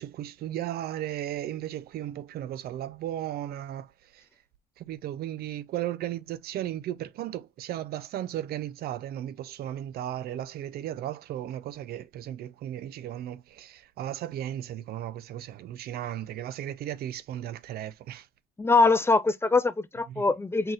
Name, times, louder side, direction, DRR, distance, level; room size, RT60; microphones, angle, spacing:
voice 1, 0.0-4.3 4.8-18.3 20.1-20.2, right 12 dB, 65° right, 0.6 m, -35 dB
voice 2, 18.6-20.7, left 3 dB, 15° left, 0.5 m, -23 dB
4.6 x 3.9 x 2.5 m
cardioid pair, 110°, 17 cm